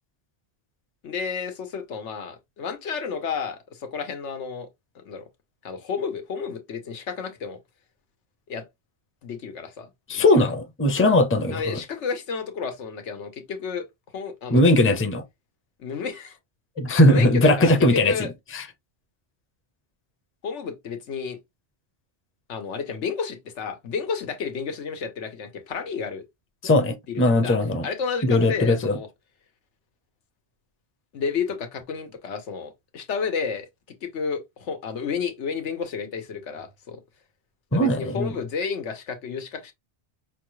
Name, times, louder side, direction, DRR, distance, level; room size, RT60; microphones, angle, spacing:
voice 1, 1.0-4.7 4.9-5.3 5.6-7.6 8.5-8.6 9.2-10.2 11.5-13.9 14.1-14.7 15.8-16.4 16.8-18.3 20.4-21.4 22.5-26.2 27.1-27.6 27.8-29.1 31.1-33.7 34.0-37.0 37.7-39.7, left 5 dB, 85° left, 1.2 m, -31 dB
voice 2, 10.1-11.8 14.5-15.2 16.8-18.2 18.5-18.6 26.6-27.9 28.2-29.0 37.7-38.3, left 1 dB, 15° left, 0.6 m, -19 dB
5.7 x 2.3 x 3.1 m
omnidirectional pair, 1.2 m